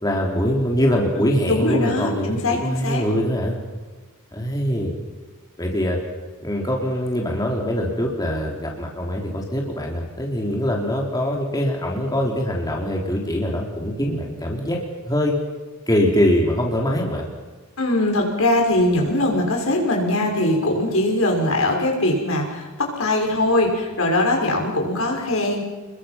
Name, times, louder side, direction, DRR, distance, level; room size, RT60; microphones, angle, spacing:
voice 1, 0.0-3.6 4.3-4.9 5.6-6.0 6.4-14.8 15.0-15.4 15.9-17.2, equal, 15° left, -1 dB, 3.8 m, -23 dB
voice 2, 1.4-3.0 17.8-25.6, left 1 dB, 65° left, 1 dB, 6.0 m, -21 dB
29.5 x 22.0 x 6.0 m, 1.3 s
head